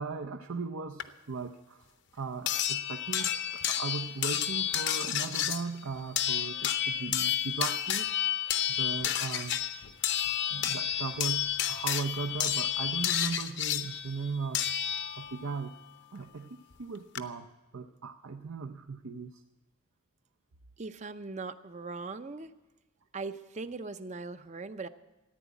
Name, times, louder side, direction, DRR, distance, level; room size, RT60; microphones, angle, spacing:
voice 1, 0.0-1.9 2.1-9.6 10.5-14.6 15.2-15.7 16.1-19.4, right 4 dB, 75° right, 5 dB, 0.6 m, -38 dB
sound 1, 1.0-1.1 2.5-15.5 16.7-16.8 17.1-17.2, left 10 dB, 55° left, 0.7 m, -31 dB
voice 2, 20.8-22.5 23.1-24.9, right 3 dB, 30° right, 12 dB, 0.5 m, -39 dB
15.0 x 9.6 x 8.3 m, 1.1 s
head